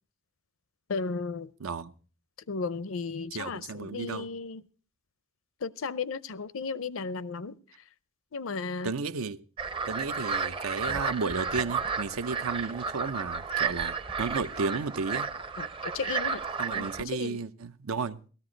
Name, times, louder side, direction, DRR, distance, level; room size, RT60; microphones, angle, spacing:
voice 1, 0.9-1.5 2.5-4.6 5.6-7.6 8.3-8.9 15.6-16.4 16.8-17.4, left 4 dB, 70° left, 0.6 m, -34 dB
voice 2, 1.6-1.9 3.3-4.3 8.8-9.4 9.9-15.3 16.6-18.2, right 4 dB, 85° right, 0.7 m, -33 dB
sound 1, 9.6-17.0, right 5 dB, 25° right, 0.6 m, -32 dB
17.0 x 13.5 x 3.9 m
head